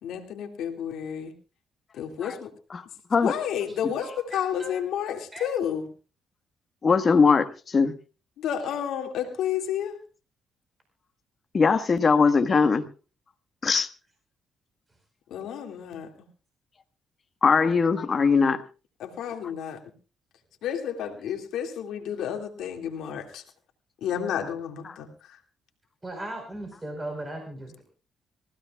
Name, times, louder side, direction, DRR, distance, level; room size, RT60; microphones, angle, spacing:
voice 1, 0.0-1.3 1.9-2.5 3.2-5.9 8.4-10.0 15.3-16.1 19.0-19.8 20.6-23.4 24.0-25.1, left 9 dB, 80° left, 3 dB, 2.4 m, -31 dB
voice 2, 3.7-4.7 5.3-5.5 26.0-27.8, right 1 dB, 20° right, 3 dB, 4.7 m, -38 dB
voice 3, 6.8-7.4 7.7-7.9 11.5-12.8 13.6-13.9 17.4-18.6, left 5 dB, 40° left, 7 dB, 1.5 m, -20 dB
26.0 x 15.5 x 2.4 m, 0.35 s
cardioid pair, 90°, 0 cm